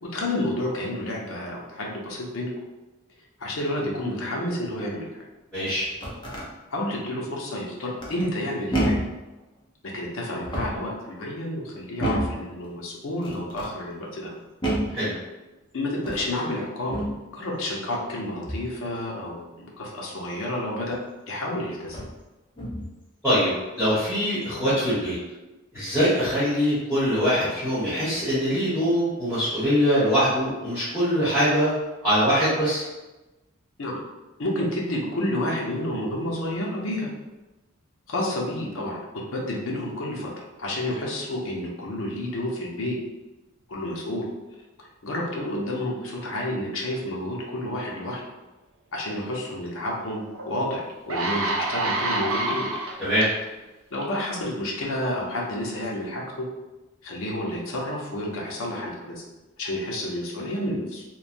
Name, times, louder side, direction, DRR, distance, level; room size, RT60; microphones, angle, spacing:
voice 1, 0.0-2.5 3.4-5.2 6.7-9.0 9.8-14.3 15.7-17.0 17.3-21.0 21.3-22.0 33.8-34.0 34.4-37.1 38.1-40.3 40.6-43.0 43.7-44.3 44.8-48.2 48.9-52.7 53.9-56.5 57.0-59.2 59.6-61.0, left 1 dB, 80° left, -2 dB, 0.6 m, -30 dB
voice 2, 5.5-5.9 14.9-15.1 23.2-23.5 23.8-25.1 25.7-31.7 32.0-32.8 53.0-53.3, equal, 5° left, -16 dB, 1.2 m, -23 dB
sound 1, 5.9-6.5 8.0-8.4 8.7-9.2 10.3-10.9 12.0-12.4 13.2-13.7 14.6-15.0 16.0-16.3 16.9-17.2 18.4-18.8 20.9-21.0 21.8-22.2 22.6-23.0, right 1 dB, 25° left, 0.5 m, -29 dB
sound 2, 50.3-50.4 50.9-53.3 53.9-54.2, right 2 dB, 90° right, 0.5 m, -27 dB
3.0 x 2.2 x 2.5 m, 1.1 s
head